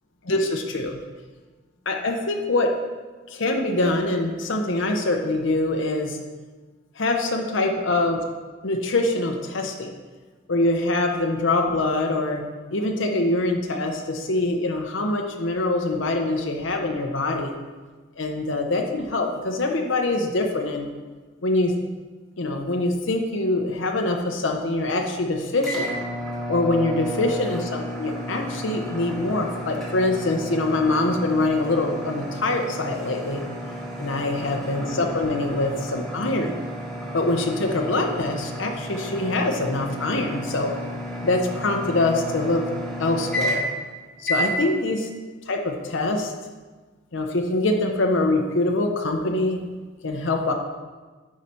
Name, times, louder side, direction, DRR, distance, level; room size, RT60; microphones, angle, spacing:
voice 1, 0.2-1.0 1.9-2.7 3.3-6.2 7.0-8.2 8.6-9.9 10.5-12.4 12.7-17.5 18.2-20.9 21.4-21.7 22.4-25.9 26.5-33.4 34.0-36.6 37.1-40.7 41.2-42.6 43.0-43.7 44.2-45.1 45.5-46.3 47.1-49.6 50.0-50.5, left 2 dB, 70° left, 3 dB, 0.8 m, -24 dB
sound 1, 25.6-43.9 44.2-44.6, equal, ahead, 1.3 m, -32 dB
9.3 x 4.9 x 4.4 m, 1.3 s
head